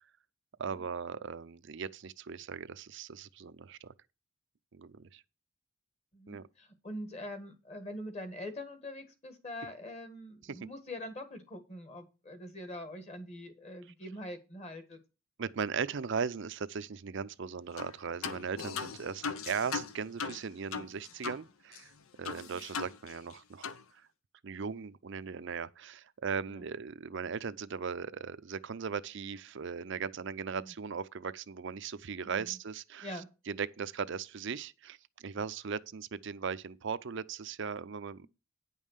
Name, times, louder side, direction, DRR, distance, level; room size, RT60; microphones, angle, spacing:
voice 1, 0.6-3.9 4.7-5.2 6.3-6.4 10.4-10.7 15.4-21.9 22.2-23.7 24.4-38.3, right 6 dB, 60° right, 0.5 m, -38 dB
voice 2, 6.1-15.0 22.4-22.6 26.5-26.6 30.6-30.7 32.2-32.6 33.0-33.3 38.2-38.3, left 1 dB, 30° left, 1.6 m, -44 dB
sound 1, 17.8-17.9 18.2-21.4 21.7-21.8 22.2-23.3 23.6-23.8, left 5 dB, 75° left, 0.7 m, -39 dB
9.8 x 5.5 x 6.5 m
head